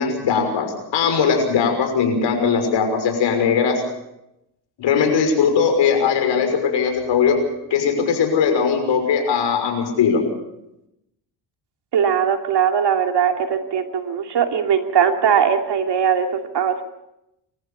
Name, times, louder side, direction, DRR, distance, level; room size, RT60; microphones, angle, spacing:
voice 1, 0.0-3.8 4.8-7.4 7.7-10.2, left 6 dB, 70° left, 4 dB, 6.1 m, -19 dB
voice 2, 11.9-16.8, right 7 dB, 60° right, 5 dB, 2.8 m, -20 dB
25.5 x 14.5 x 7.0 m, 0.87 s
supercardioid pair, 75°, 46 cm